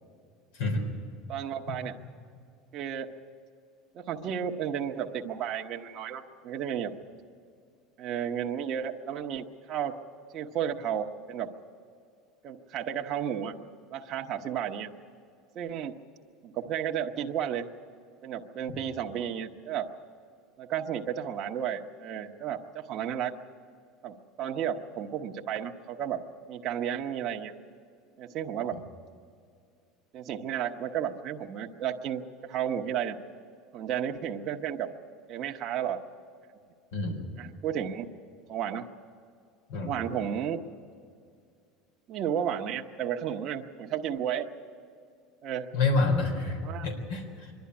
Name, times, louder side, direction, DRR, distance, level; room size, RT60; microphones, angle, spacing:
voice 1, 1.3-1.9 2.7-3.1 3.9-6.9 8.0-10.0 10.3-11.5 12.4-13.5 13.9-14.9 15.5-16.0 16.4-17.7 18.2-19.9 20.6-23.3 24.0-26.2 26.5-27.5 28.2-28.8 30.1-33.2 33.7-34.9 35.3-36.0 37.4-38.1 38.5-38.9 39.8-40.6 42.1-44.5 45.4-45.7 46.6-46.9, right 9 dB, 40° right, 2 dB, 1.0 m, -33 dB
voice 2, 36.9-37.2 39.7-39.9 45.7-47.5, left 3 dB, 85° left, 2 dB, 3.7 m, -28 dB
25.0 x 11.5 x 9.7 m, 2.4 s
supercardioid pair, 140°, 0 cm